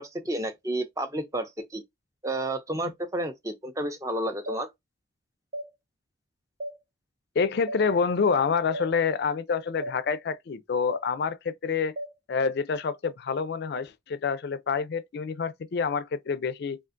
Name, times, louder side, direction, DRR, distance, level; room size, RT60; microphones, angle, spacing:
voice 1, 0.0-1.8 2.2-4.7, right 1 dB, 15° right, 0.5 m, -31 dB
sound 1, 4.5-4.6 5.5-5.7 6.6-6.8 7.7-7.8 8.7-8.9 9.8-10.0 10.9-11.0 12.0-12.1, right 1 dB, 45° right, 0.9 m, -35 dB
voice 2, 7.4-11.9 12.3-16.8, left 5 dB, 55° left, 0.3 m, -27 dB
3.6 x 2.4 x 2.5 m
head